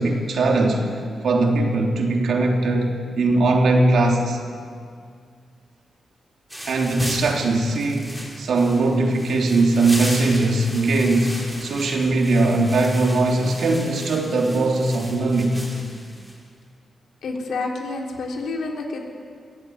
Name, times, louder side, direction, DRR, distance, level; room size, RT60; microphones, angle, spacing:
voice 1, 0.0-4.4 6.7-15.6, right 2 dB, 75° right, 2 dB, 3.0 m, -20 dB
sound 1, 6.5-16.4, equal, 5° right, 5.4 m, -36 dB
voice 2, 17.2-19.0, left 3 dB, 80° left, 1 dB, 3.7 m, -29 dB
22.5 x 15.0 x 9.5 m, 2.1 s
wide cardioid pair, 120°, 0 cm